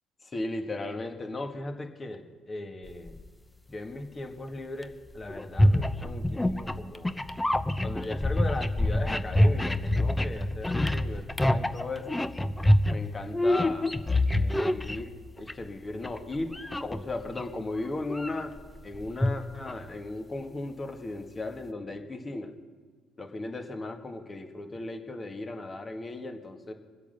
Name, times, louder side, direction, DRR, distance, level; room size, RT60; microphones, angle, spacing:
voice 1, 0.2-3.2 3.7-7.2 7.8-12.1 12.9-13.9 14.3-18.5 18.8-22.5 23.2-26.7, left 2 dB, 30° left, 5 dB, 1.8 m, -37 dB
sound 1, 2.9-3.3 4.8-4.9 5.2-15.7 16.0-17.4 17.8-19.9, left 1 dB, 15° left, 0.8 m, -26 dB
23.0 x 8.2 x 6.8 m, 1.5 s
supercardioid pair, 70°, 0 cm